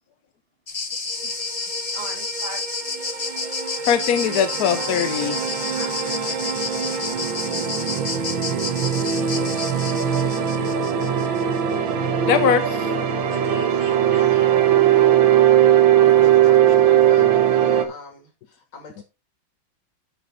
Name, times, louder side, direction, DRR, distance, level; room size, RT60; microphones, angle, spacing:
sound 1, 0.7-11.6, left 3 dB, 30° left, 0.6 m, -30 dB
sound 2, 1.7-17.8, right 10 dB, 75° right, 1.8 m, -20 dB
voice 1, 1.9-2.6 4.7-7.4 9.2-10.2 13.3-14.6, right 2 dB, 30° right, 2.0 m, -39 dB
voice 2, 3.9-5.4 12.3-12.9 17.2-17.3, left 8 dB, 65° left, 1.0 m, -21 dB
voice 3, 15.9-19.0, left 3 dB, 85° left, 3.6 m, -40 dB
10.5 x 5.7 x 3.8 m
omnidirectional pair, 2.1 m